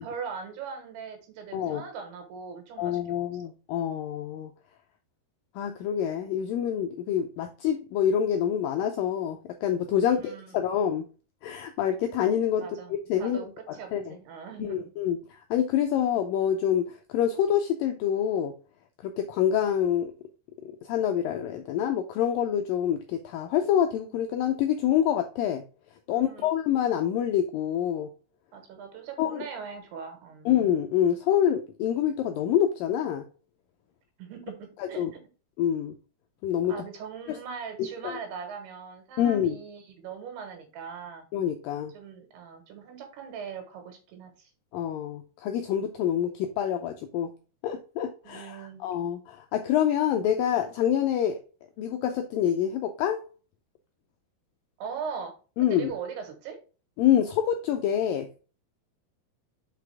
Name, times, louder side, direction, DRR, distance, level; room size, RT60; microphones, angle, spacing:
voice 1, 0.0-3.3 10.0-10.6 12.6-12.9 13.2-13.5 13.7-14.9 26.1-26.5 28.5-30.5 34.2-35.2 36.7-41.2 41.9-44.5 48.2-48.8 54.8-55.3 55.7-56.6, right 6 dB, 80° right, 5 dB, 3.5 m, -40 dB
voice 2, 2.8-4.5 5.6-11.1 11.4-12.6 12.9-13.4 13.9-14.2 14.6-15.2 15.5-18.5 19.0-20.1 20.6-25.6 26.1-28.1 29.2-29.5 30.5-33.2 35.0-35.1 35.6-36.0 36.4-36.7 37.3-37.4 38.0-38.1 39.2-39.6 41.3-41.9 44.7-47.3 47.6-51.4 51.8-53.2 55.6-55.9 57.0-58.4, left 9 dB, 85° left, 5 dB, 2.0 m, -26 dB
5.9 x 5.0 x 3.4 m, 0.35 s
omnidirectional pair, 4.6 m